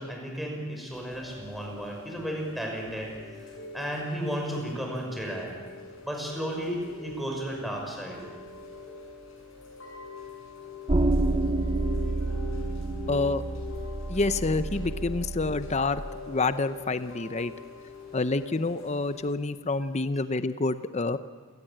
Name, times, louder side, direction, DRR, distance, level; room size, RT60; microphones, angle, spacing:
voice 1, 0.0-3.1 3.7-5.5 6.0-8.2 12.3-12.4, equal, ahead, 0 dB, 5.8 m, -33 dB
Chime / Rain, 0.9-19.3, left 5 dB, 80° left, 8.0 m, -44 dB
sound 1, 10.9-16.0, right 2 dB, 25° right, 0.8 m, -29 dB
voice 2, 13.1-13.4 14.1-16.0 16.3-17.5 18.1-21.2, left 3 dB, 35° left, 12 dB, 0.7 m, -28 dB
28.0 x 18.0 x 8.9 m, 1.5 s
head